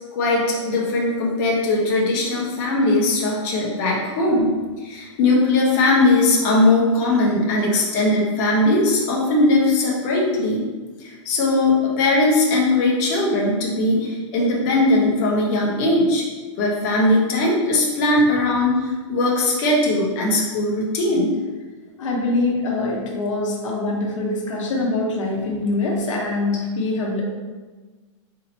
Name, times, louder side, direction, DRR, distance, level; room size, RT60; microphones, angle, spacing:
voice 1, 0.1-4.5 4.8-10.6 11.0-16.2 16.6-21.3, left 2 dB, 35° left, -4 dB, 1.1 m, -19 dB
voice 2, 22.0-27.2, left 2 dB, 70° left, -2 dB, 1.0 m, -24 dB
4.0 x 3.9 x 3.0 m, 1.3 s
hypercardioid pair, 155°, 17 cm